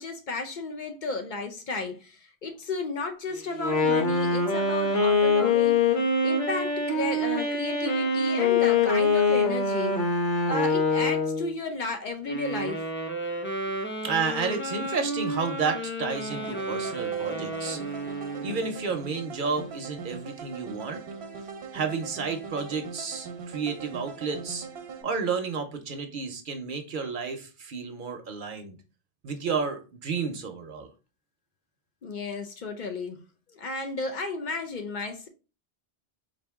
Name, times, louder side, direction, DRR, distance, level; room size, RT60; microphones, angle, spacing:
voice 1, 0.0-5.8 6.2-10.0 10.5-12.9 32.0-33.2 33.5-35.3, left 3 dB, 55° left, 0.7 m, -33 dB
Wind instrument woodwind instrument, 3.5-11.5, left 3 dB, 85° left, 1.4 m, -24 dB
Wind instrument woodwind instrument 2, 12.2-18.7, right 2 dB, 15° left, 0.5 m, -33 dB
voice 2, 14.0-17.8 18.4-21.0 21.7-24.7 25.0-28.8 29.2-30.9, right 5 dB, 60° right, 0.8 m, -31 dB
sound 1, 16.3-25.0, right 5 dB, 80° right, 1.0 m, -41 dB
4.3 x 2.6 x 3.4 m
omnidirectional pair, 1.0 m